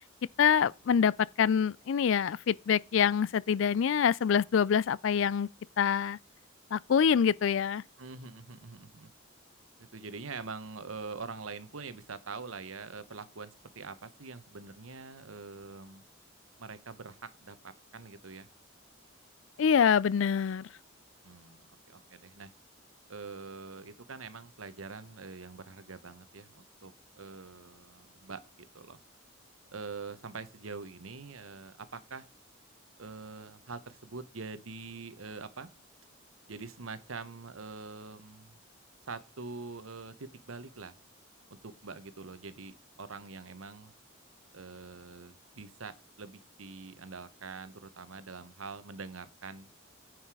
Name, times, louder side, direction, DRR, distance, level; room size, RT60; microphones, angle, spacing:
voice 1, 0.4-1.1 1.4-5.5 5.8-6.2 6.7-7.8 19.6-20.7, left 7 dB, 65° left, 0.4 m, -25 dB
voice 2, 8.0-9.1 9.8-16.0 16.6-18.5 21.2-22.5 23.1-29.0 29.7-32.3 33.0-35.7 36.5-38.6 39.1-41.0 41.5-43.9 44.5-49.7, right 4 dB, 85° right, 1.1 m, -44 dB
9.5 x 6.4 x 4.8 m
head